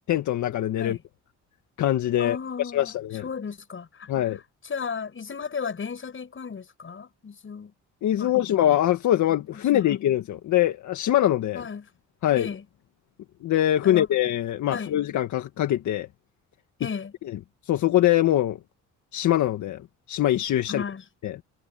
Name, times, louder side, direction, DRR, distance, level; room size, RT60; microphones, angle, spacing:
voice 1, 0.1-1.0 1.8-3.2 4.1-4.4 8.0-11.6 12.2-12.5 13.4-16.1 17.3-17.4 17.7-18.6 19.1-19.8 20.1-20.8 21.2-21.4, left 12 dB, 70° left, 1.7 m, -23 dB
voice 2, 2.2-2.9 3.2-4.3 4.6-7.7 8.2-8.6 9.5-9.9 11.5-11.8 12.3-12.6 13.8-14.1 14.7-15.0 16.8-17.1 20.7-21.0, left 6 dB, 40° left, 7.6 m, -35 dB
cardioid pair, 90°, 30 cm